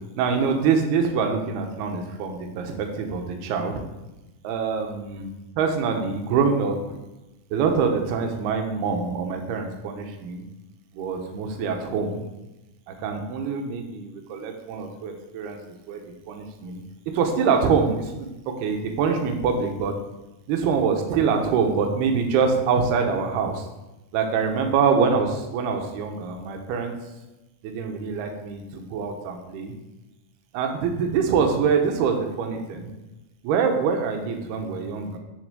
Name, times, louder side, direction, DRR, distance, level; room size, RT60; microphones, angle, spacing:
voice 1, 0.2-3.7 4.4-5.3 5.6-7.0 7.5-10.4 10.9-12.2 12.9-15.6 15.9-16.8 17.1-20.0 20.5-23.7 24.1-26.9 27.6-29.7 30.5-32.9 33.4-35.2, right 5 dB, 75° right, 4 dB, 2.3 m, -25 dB
9.7 x 3.8 x 6.7 m, 1.0 s
omnidirectional pair, 5.8 m